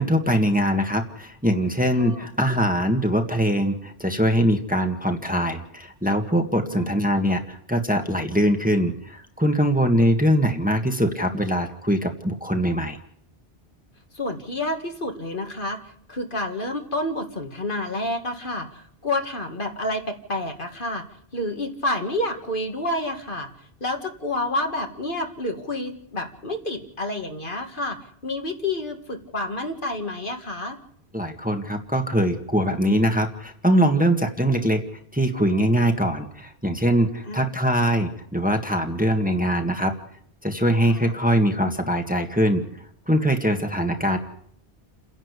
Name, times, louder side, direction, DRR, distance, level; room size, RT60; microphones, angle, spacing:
voice 1, 0.0-13.0 31.1-34.8 35.1-39.9 40.4-42.6 43.1-44.2, equal, 10° right, 4 dB, 1.7 m, -22 dB
voice 2, 14.1-15.8 16.1-21.0 21.3-23.5 23.8-30.8 37.3-37.5 40.9-41.1, left 1 dB, 55° left, 4 dB, 2.2 m, -29 dB
29.5 x 11.0 x 8.3 m, 0.68 s
omnidirectional pair, 1.0 m